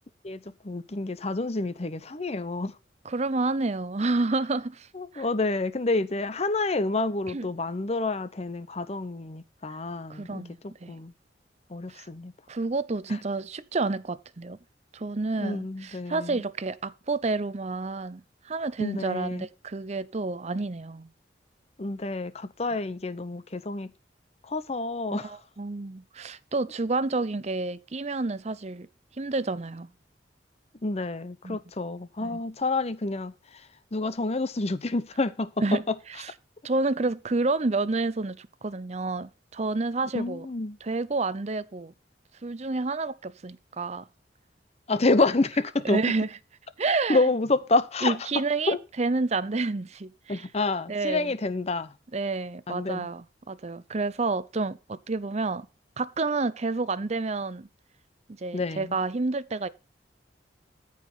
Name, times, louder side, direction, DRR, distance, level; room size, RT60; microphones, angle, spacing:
voice 1, 0.2-2.7 4.9-10.4 10.9-11.1 11.7-12.3 15.4-16.4 18.8-19.5 21.8-23.9 24.5-25.4 30.8-33.3 33.9-35.5 40.1-40.8 44.9-46.0 47.1-48.2 48.7-48.8 50.3-51.9 52.7-53.1 58.5-59.0, left 3 dB, 35° left, 0.8 m, -28 dB
voice 2, 3.0-4.9 5.1-5.3 7.3-7.5 10.1-10.9 11.9-12.1 12.5-14.6 14.9-21.1 25.1-28.9 29.2-29.9 31.4-31.6 32.2-32.4 35.6-36.3 36.6-40.5 40.8-41.9 42.4-44.1 44.9-45.0 45.8-46.3 46.8-47.3 48.0-50.5 50.9-51.3 52.1-55.7 56.0-57.7 58.4-59.7, right 3 dB, 40° right, 0.6 m, -29 dB
13.5 x 5.0 x 5.4 m
head